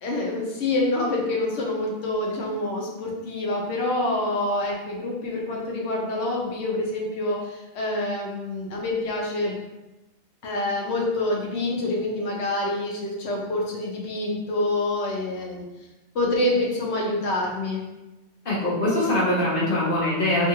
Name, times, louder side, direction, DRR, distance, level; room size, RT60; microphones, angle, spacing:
voice 1, 0.0-9.5 10.4-15.6 16.1-17.8, left 2 dB, 80° left, -2 dB, 1.0 m, -26 dB
voice 2, 18.4-20.5, left 1 dB, 55° left, -6 dB, 1.1 m, -22 dB
2.6 x 2.4 x 2.8 m, 1.0 s
omnidirectional pair, 1.1 m